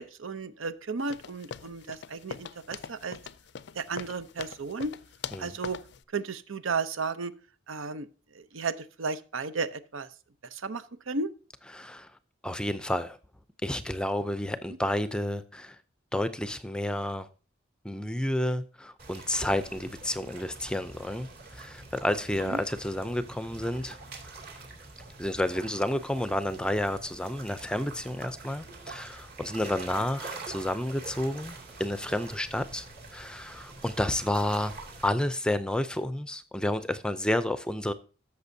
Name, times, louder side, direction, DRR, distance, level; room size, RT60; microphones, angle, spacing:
voice 1, 0.0-3.2 3.7-4.9 5.4-5.8 6.1-7.3 7.7-8.1 8.3-10.1 10.5-11.3 22.5-22.6 29.9-30.0, right 4 dB, 85° right, 0.7 m, -34 dB
sound 1, 1.1-6.0, left 7 dB, 60° left, 0.4 m, -42 dB
voice 2, 11.7-12.1 12.4-13.2 13.6-15.8 16.1-17.3 17.8-21.3 21.5-24.0 25.2-32.9 33.1-34.7 35.0-37.9, left 1 dB, 5° left, 0.5 m, -30 dB
sound 2, 19.0-35.1, right 3 dB, 50° right, 2.5 m, -45 dB
13.5 x 6.8 x 2.7 m
head